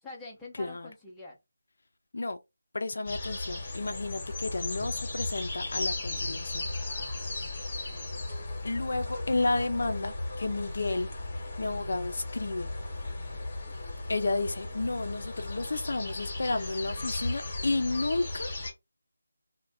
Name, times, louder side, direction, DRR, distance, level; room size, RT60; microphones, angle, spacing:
voice 1, 0.0-1.4 6.7-7.5 7.9-8.3, left 2 dB, 5° left, 0.5 m, -47 dB
voice 2, 0.6-0.9 2.1-2.4 2.7-6.7 8.6-11.1 11.6-12.7 14.1-18.5, left 2 dB, 50° left, 0.4 m, -31 dB
sound 1, 3.1-18.7, left 2 dB, 25° left, 0.9 m, -36 dB
2.4 x 2.1 x 3.3 m
figure-of-eight pair, 175°, 0 cm